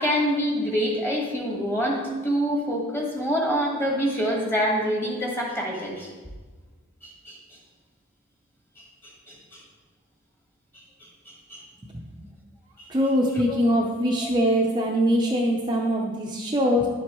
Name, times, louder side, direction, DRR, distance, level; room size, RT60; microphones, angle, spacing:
voice 1, 0.0-6.1 7.0-7.4 9.3-9.6 11.0-11.7 12.8-13.1 13.5-13.6 14.2-14.3, equal, 10° left, -1 dB, 1.5 m, -26 dB
voice 2, 12.9-16.9, equal, 20° right, -2 dB, 0.6 m, -22 dB
10.5 x 7.5 x 3.1 m, 1.3 s
head